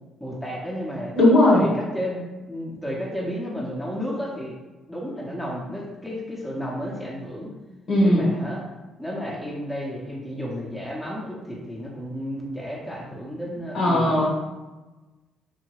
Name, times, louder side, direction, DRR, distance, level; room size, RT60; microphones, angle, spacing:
voice 1, 0.2-1.1 1.5-2.2 2.5-4.6 4.9-7.5 8.0-8.6 9.0-14.3, equal, 5° left, -4 dB, 0.7 m, -32 dB
voice 2, 1.2-1.6 7.9-8.2 13.7-14.3, left 1 dB, 60° left, -3 dB, 1.0 m, -17 dB
2.8 x 2.6 x 3.0 m, 1.1 s
supercardioid pair, 70°, 0 cm